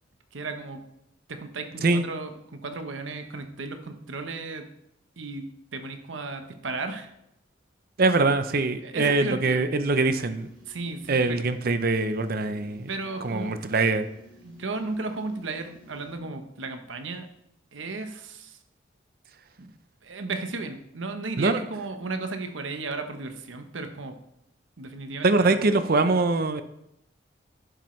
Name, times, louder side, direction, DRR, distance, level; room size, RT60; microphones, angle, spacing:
voice 1, 0.3-0.8 1.3-4.7 5.2-5.4 5.7-7.1 8.8-9.6 10.7-11.4 12.9-13.6 14.4-17.3 17.7-18.6 19.6-19.7 20.0-24.2 24.8-25.6, right 3 dB, 80° right, 6 dB, 1.0 m, -34 dB
voice 2, 8.0-10.5 11.1-12.9 13.2-14.1 21.4-21.6 25.2-26.6, right 3 dB, 50° right, 11 dB, 0.6 m, -23 dB
sound 1, 9.9-16.2, left 1 dB, 25° right, 3.7 m, -54 dB
11.5 x 7.7 x 3.2 m, 0.79 s
head